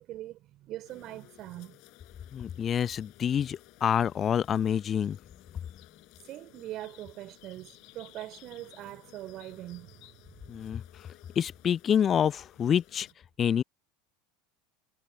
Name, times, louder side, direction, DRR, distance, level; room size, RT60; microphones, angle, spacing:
voice 1, 0.0-1.8 6.3-10.4, right 15 dB, 45° right, 4.9 m, -42 dB
sound 1, 0.8-13.1, left 23 dB, 50° left, 5.4 m, -57 dB
voice 2, 2.3-5.2 10.5-10.8 11.4-13.1 13.4-13.6, left 8 dB, 30° left, 0.9 m, -27 dB
figure-of-eight pair, 75°, 0 cm